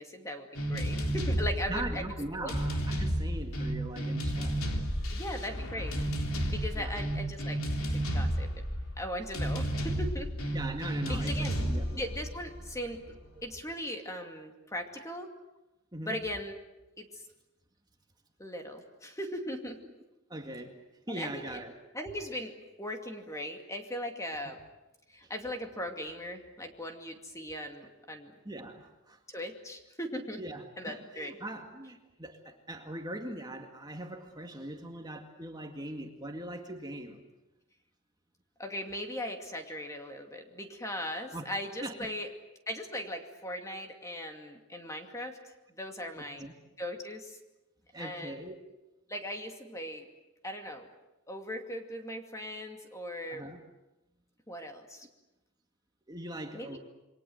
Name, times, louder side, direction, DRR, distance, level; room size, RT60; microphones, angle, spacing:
voice 1, 0.0-2.0 2.3-2.5 5.1-6.0 6.5-7.6 7.9-8.6 9.0-10.3 11.1-11.6 12.0-13.1 13.4-15.3 16.0-16.6 17.0-17.2 18.4-19.8 21.1-21.6 21.9-24.6 25.1-28.3 29.3-30.4 30.8-31.3 38.6-42.3 42.7-45.4 45.8-46.5 46.8-47.4 48.0-48.4 49.1-50.1 50.4-50.9 51.3-53.5 54.5-55.1 56.5-56.8, left 1 dB, 15° left, 4 dB, 2.4 m, -39 dB
sound 1, 0.5-13.3, equal, 75° left, 3.6 m, -32 dB
voice 2, 1.7-4.6 6.8-7.0 10.5-12.0 15.9-16.2 20.3-20.8 21.1-21.7 25.2-25.3 28.4-29.2 30.4-37.2 41.3-41.5 41.8-42.1 46.1-46.5 47.9-48.6 53.3-53.6 56.1-56.8, right 1 dB, 20° right, 4 dB, 2.1 m, -41 dB
28.0 x 23.5 x 7.9 m, 0.99 s
head